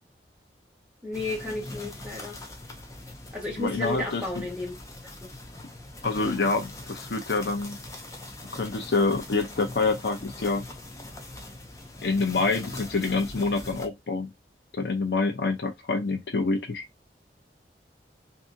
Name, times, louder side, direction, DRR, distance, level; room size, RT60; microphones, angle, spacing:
voice 1, 1.0-2.4 3.3-4.7 5.2-5.3, left 2 dB, 5° right, 1.2 m, -32 dB
sound 1, 1.1-13.9, left 2 dB, 20° left, 0.5 m, -42 dB
voice 2, 3.6-4.4 6.0-7.8 8.5-10.7 12.0-14.3 14.7-16.9, left 3 dB, 75° left, 0.6 m, -27 dB
2.7 x 2.6 x 2.5 m
head